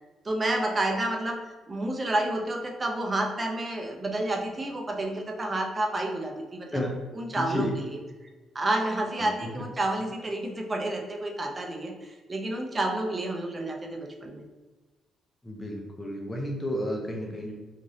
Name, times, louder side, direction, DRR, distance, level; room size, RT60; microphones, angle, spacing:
voice 1, 0.2-1.4 1.7-6.8 7.1-8.0 8.5-14.4, right 1 dB, 25° right, 2 dB, 0.6 m, -30 dB
voice 2, 7.4-7.8 9.4-9.6 15.4-17.5, left 1 dB, 15° left, -1 dB, 0.5 m, -32 dB
3.0 x 2.5 x 2.6 m, 1.3 s
cardioid pair, 90°, 0 cm